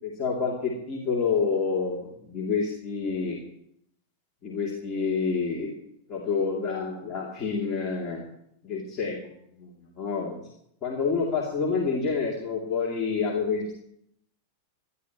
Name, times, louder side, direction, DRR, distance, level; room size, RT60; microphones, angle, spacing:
voice 1, 0.0-3.4 4.4-5.7 6.1-8.2 8.6-9.3 9.6-9.7 10.0-10.4 10.8-13.8, left 5 dB, 30° left, -3 dB, 2.9 m, -28 dB
24.0 x 11.5 x 3.1 m, 0.73 s
figure-of-eight pair, 90°, 0 cm